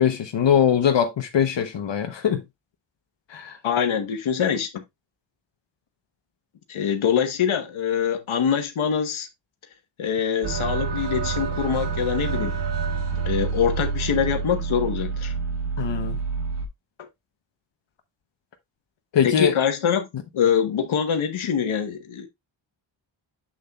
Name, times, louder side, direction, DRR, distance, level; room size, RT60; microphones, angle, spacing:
voice 1, 0.0-2.4 3.3-3.6 15.8-16.2 19.1-19.5, left 8 dB, 65° left, 0.9 m, -21 dB
voice 2, 3.6-4.8 6.7-9.3 10.0-12.6 13.2-15.3 19.2-20.1 20.3-22.3, left 8 dB, 85° left, 1.3 m, -24 dB
sound 1, 10.4-16.6, right 5 dB, 60° right, 1.5 m, -27 dB
7.6 x 6.8 x 2.3 m
wide cardioid pair, 170°, 47 cm